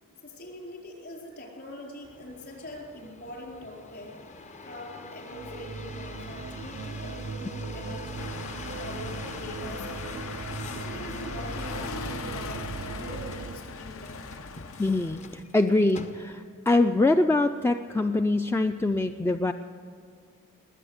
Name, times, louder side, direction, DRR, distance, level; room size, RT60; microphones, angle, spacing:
voice 1, 0.2-4.2 4.6-8.4 8.8-10.4 10.7-14.3, left 1 dB, 50° left, 0 dB, 4.4 m, -43 dB
sound 1, 2.0-16.6 17.2-17.7, left 3 dB, 30° left, 0.7 m, -45 dB
sound 2, 5.0-13.6, right 4 dB, 55° right, 0.5 m, -39 dB
sound 3, 8.2-15.4, left 4 dB, 65° left, 0.7 m, -39 dB
voice 2, 14.8-19.5, left 2 dB, 10° left, 7 dB, 0.3 m, -24 dB
21.0 x 8.4 x 8.0 m, 2.3 s
head